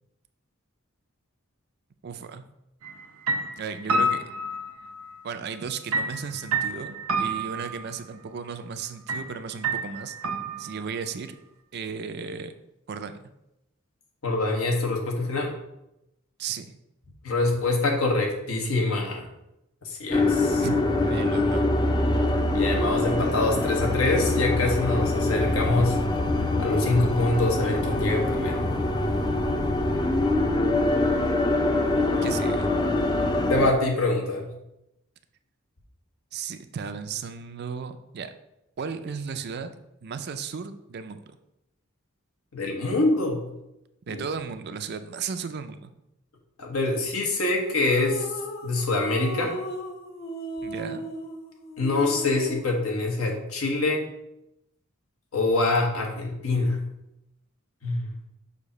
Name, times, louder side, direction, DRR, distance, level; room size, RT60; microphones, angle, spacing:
voice 1, 2.0-2.4 3.6-4.2 5.2-10.1 10.6-11.4 11.7-12.5 12.9-13.2 16.4-16.7 20.6-21.6 32.2-32.8 36.3-38.3 38.8-39.7 40.0-41.4 44.1-45.9 50.6-51.0, right 6 dB, 50° right, 9 dB, 0.4 m, -35 dB
sound 1, 2.8-3.0 3.3-5.1 5.9-8.0 9.1-9.3 9.6-11.0, right 2 dB, 85° right, 0.7 m, -28 dB
voice 2, 14.2-15.6 17.2-19.2 19.8-20.6 22.5-26.0 26.6-28.7 33.3-34.5 42.5-43.4 44.1-44.2 46.6-48.3 48.6-49.6 51.8-54.1 55.3-56.8 57.8-58.1, left 2 dB, 80° left, 1 dB, 1.3 m, -25 dB
sound 2, 20.1-33.7, left 2 dB, 20° left, 0.5 m, -24 dB
sound 3, 47.4-52.8, equal, 50° left, 0.7 m, -36 dB
6.6 x 2.8 x 5.2 m, 0.87 s
head